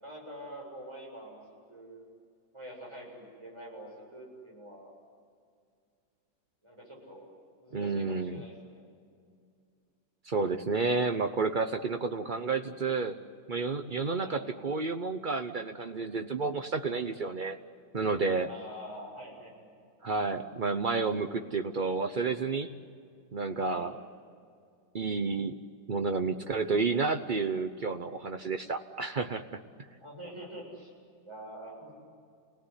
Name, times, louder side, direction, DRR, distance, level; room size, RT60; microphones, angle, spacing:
voice 1, 0.0-1.4 1.7-2.1 2.5-4.9 6.6-7.3 7.6-8.9 14.1-14.5 18.4-19.7 23.6-23.9 30.0-30.9 31.2-31.9, right 1 dB, 15° right, -2 dB, 7.8 m, -46 dB
voice 2, 7.7-8.4 10.2-13.2 13.5-17.6 17.9-18.5 20.0-22.7 23.3-23.9 24.9-25.6 25.9-29.6, right 4 dB, 80° right, 6 dB, 0.4 m, -30 dB
29.5 x 18.5 x 9.8 m, 2.3 s
omnidirectional pair, 2.3 m